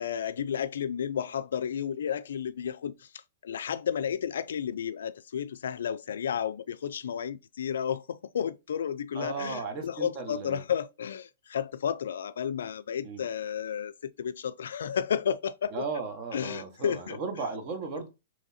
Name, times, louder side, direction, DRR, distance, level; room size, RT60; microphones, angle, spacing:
voice 1, 0.0-15.9 16.3-17.2, left 8 dB, 80° left, 0.3 m, -32 dB
voice 2, 9.1-10.6 13.0-13.2 15.7-18.1, right 4 dB, 40° right, 1.2 m, -36 dB
3.5 x 3.1 x 4.1 m
hypercardioid pair, 135°, 0 cm